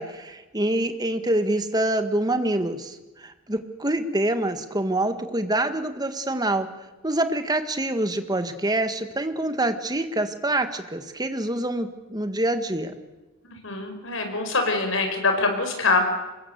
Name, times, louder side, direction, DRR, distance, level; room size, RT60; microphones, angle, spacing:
voice 1, 0.0-6.7 7.0-12.9, right 1 dB, 20° right, 9 dB, 1.8 m, -26 dB
voice 2, 13.6-16.1, left 3 dB, 65° left, 5 dB, 5.4 m, -24 dB
26.0 x 21.5 x 8.3 m, 1.1 s
head